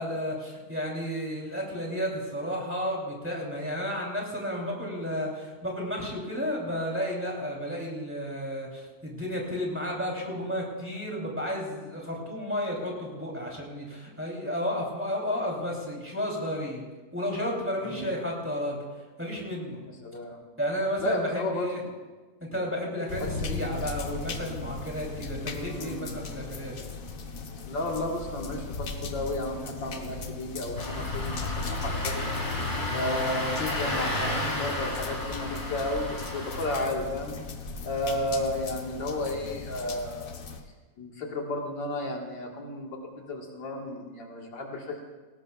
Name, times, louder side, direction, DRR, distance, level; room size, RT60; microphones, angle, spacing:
voice 1, 0.0-16.8 17.1-18.8 19.2-19.8 20.6-21.8 22.4-26.7, equal, 5° right, -3 dB, 3.0 m, -32 dB
voice 2, 19.8-20.4 21.0-21.9 25.4-26.2 27.7-32.3 32.9-37.3 37.8-40.4 41.0-45.0, left 1 dB, 80° left, 0 dB, 2.3 m, -33 dB
sound 1, 23.1-40.6, left 4 dB, 55° left, 1.3 m, -37 dB
Engine starting, 30.8-36.9, left 1 dB, 25° left, 2.0 m, -33 dB
18.5 x 18.0 x 2.3 m, 1.3 s
omnidirectional pair, 2.0 m